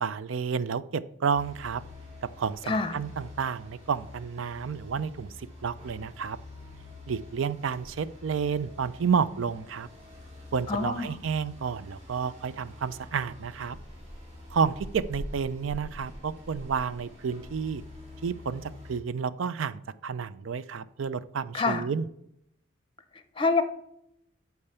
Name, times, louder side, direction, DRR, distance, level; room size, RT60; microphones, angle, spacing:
voice 1, 0.0-1.8 2.4-6.4 7.1-9.9 10.5-13.8 14.5-17.8 18.2-22.1, right 6 dB, 85° right, 16 dB, 0.5 m, -30 dB
sound 1, 1.3-19.0, left 1 dB, 35° right, 3.0 m, -46 dB
voice 2, 10.7-11.1 21.5-21.8 23.4-23.6, left 4 dB, 25° left, 11 dB, 0.7 m, -26 dB
8.7 x 4.7 x 6.9 m, 0.77 s
head